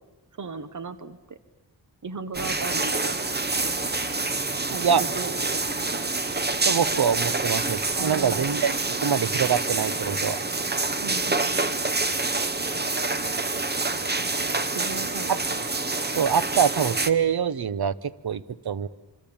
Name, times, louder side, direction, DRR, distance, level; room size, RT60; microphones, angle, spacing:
voice 1, 0.4-1.4 2.0-3.2 4.7-5.8 7.9-8.5 11.0-11.7 14.2-15.5, right 4 dB, 45° right, 13 dB, 1.3 m, -36 dB
sound 1, 2.3-17.1, right 3 dB, 25° right, 1.0 m, -27 dB
voice 2, 6.7-10.4 15.3-15.4 16.1-18.9, right 7 dB, 60° right, 16 dB, 1.0 m, -25 dB
26.5 x 25.0 x 8.7 m, 1.1 s
wide cardioid pair, 155°, 42 cm